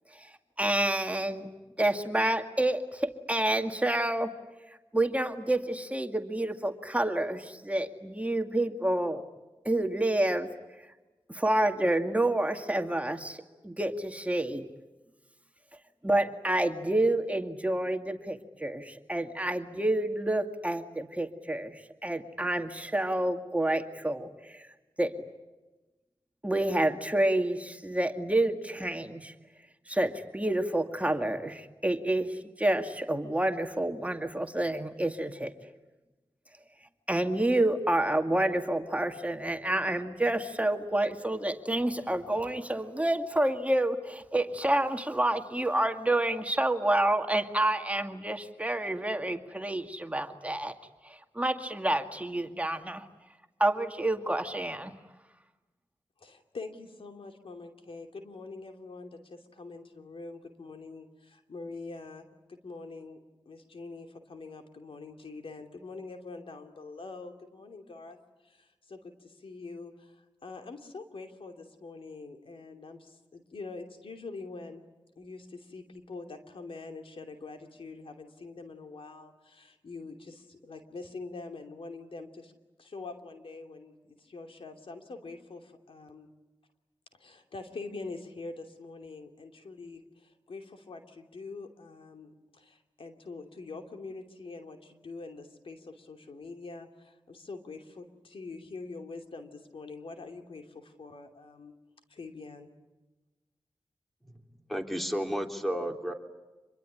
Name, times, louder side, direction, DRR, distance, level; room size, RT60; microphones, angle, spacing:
voice 1, 0.6-1.5 1.8-4.3 4.9-9.2 9.6-10.5 11.3-14.7 16.0-24.7 25.0-25.1 26.4-29.3 29.9-35.5 37.1-50.7 51.0-53.1 53.6-54.9, right 1 dB, 15° right, 6 dB, 2.1 m, -28 dB
voice 2, 56.2-63.2 63.4-68.2 68.4-74.8 75.2-82.5 82.8-86.3 87.1-101.7 102.1-102.7, left 3 dB, 75° left, 5 dB, 2.8 m, -44 dB
voice 3, 104.7-106.1, equal, ahead, 4 dB, 3.3 m, -32 dB
26.5 x 22.5 x 10.0 m, 1.1 s
cardioid pair, 50°, 9 cm